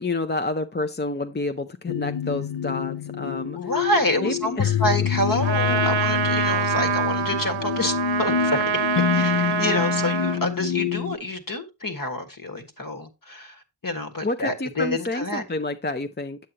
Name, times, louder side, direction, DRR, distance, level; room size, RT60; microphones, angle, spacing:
voice 1, 0.0-3.6 4.2-4.8 14.2-16.4, left 2 dB, 25° left, 0.5 m, -29 dB
sound 1, 1.9-11.2, left 8 dB, 65° left, 0.7 m, -26 dB
voice 2, 3.5-8.7 9.1-15.4, left 1 dB, 45° left, 1.6 m, -28 dB
Trumpet, 5.4-10.4, right 7 dB, 80° right, 0.7 m, -25 dB
8.4 x 7.7 x 2.8 m
wide cardioid pair, 50°, 45 cm